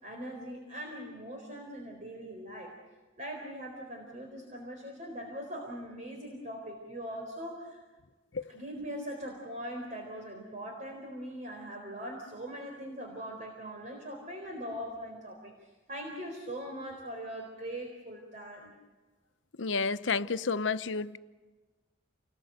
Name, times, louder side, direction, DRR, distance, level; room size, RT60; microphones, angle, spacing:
voice 1, 0.0-2.7 3.2-7.8 8.5-15.5 15.9-18.7, equal, 40° right, 4.2 m, -41 dB
voice 2, 19.6-21.2, left 4 dB, 90° left, 0.9 m, -30 dB
29.0 x 20.0 x 8.0 m
head